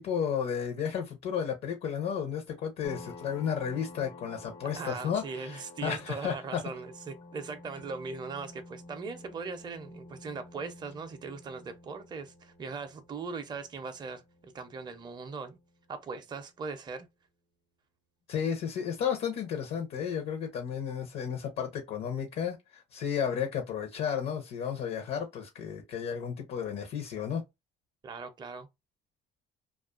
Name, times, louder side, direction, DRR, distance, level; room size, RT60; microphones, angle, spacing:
voice 1, 0.0-6.6 18.3-27.4, left 7 dB, 70° left, 0.6 m, -33 dB
sound 1, 2.8-16.1, left 2 dB, 25° left, 0.4 m, -51 dB
voice 2, 4.8-15.6 15.9-17.1 28.0-28.7, right 4 dB, 25° right, 0.5 m, -40 dB
2.4 x 2.3 x 2.3 m
cardioid pair, 110°, 17 cm